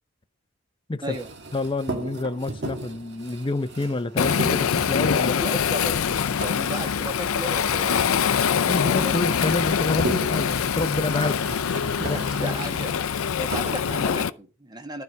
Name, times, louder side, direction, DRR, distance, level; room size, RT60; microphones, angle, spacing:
sound 1, 1.1-14.2, right 2 dB, 55° right, 1.7 m, -37 dB
voice 1, 1.5-5.3 6.3-6.4 8.7-11.6 12.0-13.0, left 2 dB, 25° left, 0.6 m, -28 dB
Waves surf, 4.2-14.3, left 7 dB, 80° left, 0.5 m, -24 dB
voice 2, 5.2-8.4 8.7-9.2 12.0-12.9 13.4-15.0, right 1 dB, 20° right, 1.5 m, -35 dB
12.5 x 4.8 x 6.6 m
head